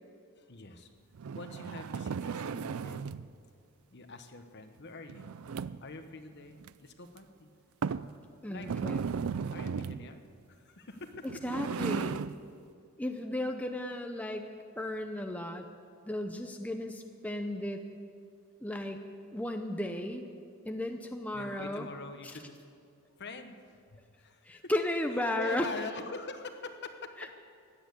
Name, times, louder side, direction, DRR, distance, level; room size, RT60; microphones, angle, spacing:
voice 1, 0.3-0.9 1.3-3.1 3.9-5.3 5.8-7.5 8.5-8.7 9.5-10.2 10.5-11.3 21.3-22.7 23.2-24.7 25.4-27.3, left 3 dB, 50° left, 7 dB, 1.1 m, -44 dB
sound 1, 1.1-3.3 5.1-6.0 6.6-6.7 7.2-7.3 7.8-8.1 8.6-10.1 11.1-12.4, right 6 dB, 70° right, 0.4 m, -35 dB
voice 2, 8.4-9.1 11.4-12.2 13.0-14.5 14.8-15.7 16.1-17.9 18.6-19.0 19.3-20.2 20.6-21.9 24.4-25.7 27.2-27.3, left 1 dB, 5° left, 4 dB, 0.6 m, -34 dB
16.0 x 10.5 x 8.3 m, 2.3 s
head